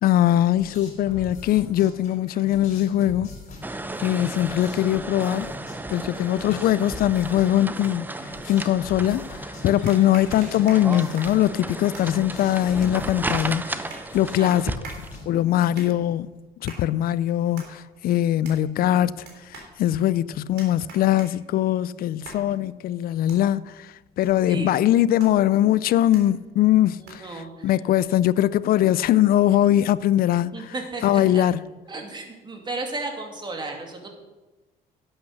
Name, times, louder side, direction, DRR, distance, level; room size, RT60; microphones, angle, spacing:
voice 1, 0.0-3.3 4.0-5.5 5.9-14.7 15.3-16.3 16.6-19.2 19.5-23.9 24.2-30.7 31.0-31.6, left 12 dB, 60° left, 0.4 m, -21 dB
sound 1, 0.5-16.0, left 3 dB, 45° left, 5.3 m, -43 dB
sound 2, 3.6-15.2, right 2 dB, 10° right, 0.7 m, -34 dB
sound 3, 9.9-27.4, right 4 dB, 75° right, 3.6 m, -47 dB
voice 2, 14.3-14.7 24.5-24.8 27.0-27.8 30.5-31.4 31.9-34.1, right 3 dB, 25° right, 2.5 m, -34 dB
11.5 x 8.8 x 6.4 m
cardioid pair, 110°, 17 cm